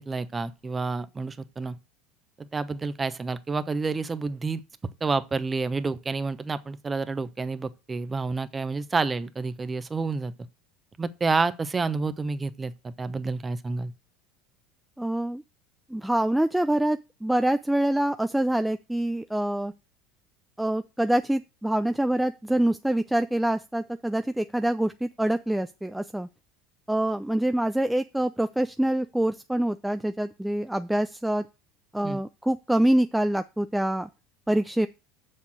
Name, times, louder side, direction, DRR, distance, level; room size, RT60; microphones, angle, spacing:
voice 1, 0.0-1.8 2.4-4.6 5.0-10.3 11.0-13.9 32.0-32.2, right 4 dB, 20° right, 0.9 m, -29 dB
voice 2, 15.0-15.4 15.9-19.7 20.6-26.3 26.9-31.5 31.9-34.1 34.5-34.9, right 1 dB, 5° right, 0.4 m, -25 dB
7.1 x 6.5 x 6.2 m
hypercardioid pair, 75°, 0 cm